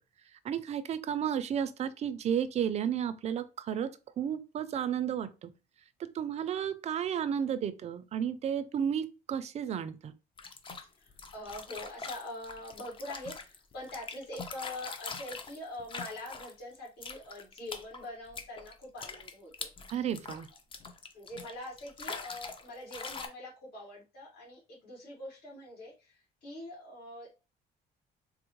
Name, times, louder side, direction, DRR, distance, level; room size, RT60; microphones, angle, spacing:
voice 1, 0.4-5.5 6.1-10.1 19.9-20.5, right 8 dB, 40° right, 0.4 m, -32 dB
sound 1, 10.4-16.8 17.0-22.7 22.9-23.3, left 4 dB, 30° left, 0.5 m, -43 dB
voice 2, 11.0-19.7 19.9-20.0 20.5-20.6 21.1-27.3, left 1 dB, 65° left, 1.5 m, -44 dB
3.7 x 2.0 x 2.9 m
cardioid pair, 110°, 17 cm